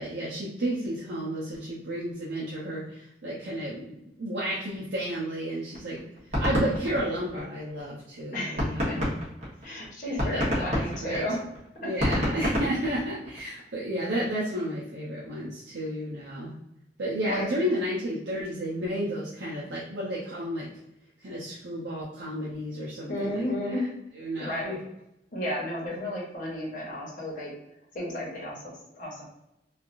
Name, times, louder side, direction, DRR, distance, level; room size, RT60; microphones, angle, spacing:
voice 1, 0.0-6.1 6.4-9.1 10.0-11.3 11.8-16.5 17.0-20.7 21.2-23.5 24.1-24.8, equal, 70° right, -6 dB, 0.7 m, -32 dB
sound 1, 5.7-7.8 8.2-8.3 8.6-13.5, equal, 40° right, 1.2 m, -28 dB
voice 2, 8.3-9.0 9.6-11.4 11.8-12.2 17.3-17.6 23.1-23.9 24.4-24.7 25.3-27.5 27.9-29.3, left 1 dB, 50° left, -5 dB, 1.1 m, -33 dB
3.2 x 2.5 x 2.6 m, 0.84 s
head